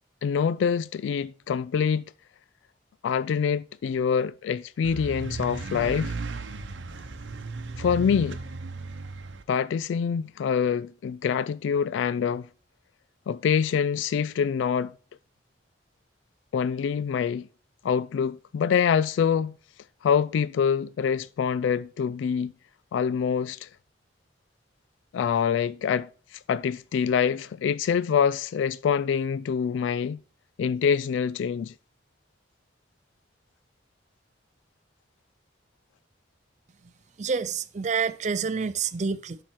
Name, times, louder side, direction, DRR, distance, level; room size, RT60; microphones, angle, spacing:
voice 1, 0.2-2.1 3.0-6.2 7.8-8.4 9.5-12.5 13.3-14.9 16.5-17.5 17.8-19.6 20.0-22.5 22.9-23.7 25.1-30.2 30.6-31.7, left 7 dB, 80° left, 0.3 m, -25 dB
sound 1, 4.8-9.4, right 3 dB, 85° right, 0.9 m, -35 dB
voice 2, 37.2-39.4, right 5 dB, 40° right, 0.4 m, -28 dB
11.5 x 4.5 x 4.5 m
head